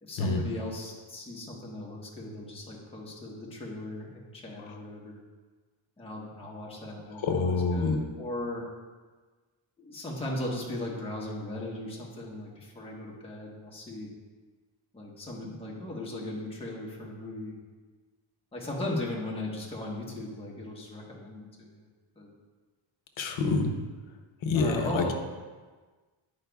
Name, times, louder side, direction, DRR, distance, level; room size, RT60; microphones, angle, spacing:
voice 1, 0.0-5.2 6.0-8.6 9.8-14.1 14.9-17.5 18.5-21.8 22.2-22.3 24.5-25.2, left 1 dB, 10° left, -3 dB, 1.1 m, -37 dB
voice 2, 7.2-8.0 23.2-23.7 24.5-25.2, left 3 dB, 65° left, 5 dB, 0.9 m, -26 dB
9.6 x 5.1 x 2.3 m, 1.4 s
cardioid pair, 125°, 50 cm